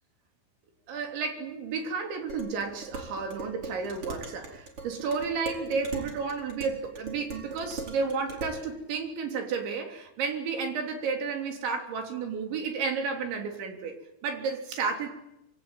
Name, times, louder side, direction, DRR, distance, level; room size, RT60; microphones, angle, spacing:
voice 1, 0.9-15.1, right 5 dB, 70° right, 4 dB, 5.7 m, -32 dB
Dishes pots and pans, 2.3-8.6, right 3 dB, 30° right, 5.1 m, -40 dB
25.5 x 24.5 x 9.1 m, 0.86 s
omnidirectional pair, 5.4 m